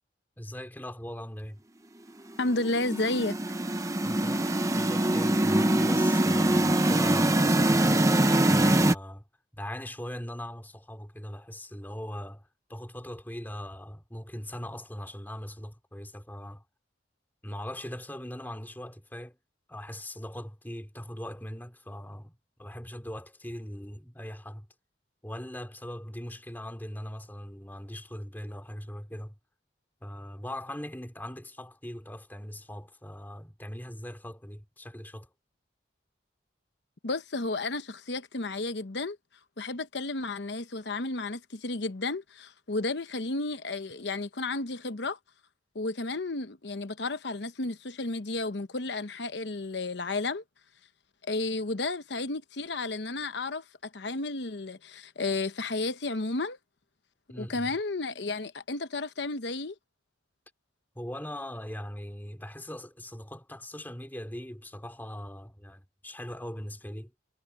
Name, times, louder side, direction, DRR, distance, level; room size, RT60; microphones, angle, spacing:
voice 1, 0.4-1.6 4.0-8.2 8.4-9.2 9.5-16.6 17.4-19.4 19.7-24.7 25.2-29.4 30.0-35.3 57.3-57.8 60.9-67.1, left 1 dB, 10° left, 2.8 m, -40 dB
voice 2, 2.4-3.4 37.0-39.2 39.6-45.2 45.7-50.4 51.3-53.6 53.9-56.6 57.4-59.7, left 2 dB, 65° left, 1.0 m, -32 dB
sound 1, 2.5-8.9, right 1 dB, 15° right, 0.8 m, -23 dB
head